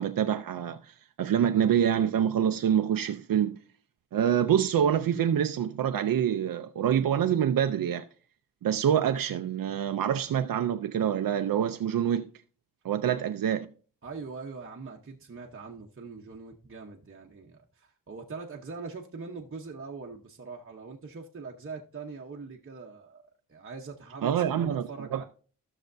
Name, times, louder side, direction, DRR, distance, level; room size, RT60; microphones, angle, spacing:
voice 1, 0.0-3.6 4.1-8.1 8.6-12.3 12.8-13.7 24.2-25.2, right 9 dB, 90° right, 0.5 m, -26 dB
voice 2, 14.0-23.2 23.5-25.2, right 4 dB, 40° right, 0.9 m, -42 dB
15.0 x 6.5 x 2.6 m
wide cardioid pair, 110°, 33 cm